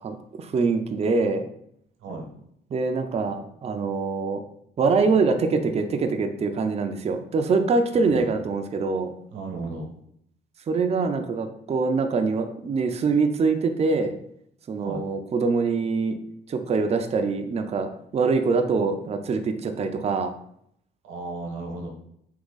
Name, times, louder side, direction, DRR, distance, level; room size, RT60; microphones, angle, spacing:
voice 1, 0.0-1.4 2.7-4.4 4.8-9.1 10.7-14.2 14.7-16.2 16.5-20.3, right 4 dB, 30° right, 6 dB, 0.4 m, -24 dB
voice 2, 7.9-8.3 9.3-9.9 14.8-15.1 21.0-21.9, right 3 dB, 85° right, 2 dB, 1.0 m, -34 dB
3.6 x 2.8 x 3.9 m, 0.71 s
cardioid pair, 90°, 20 cm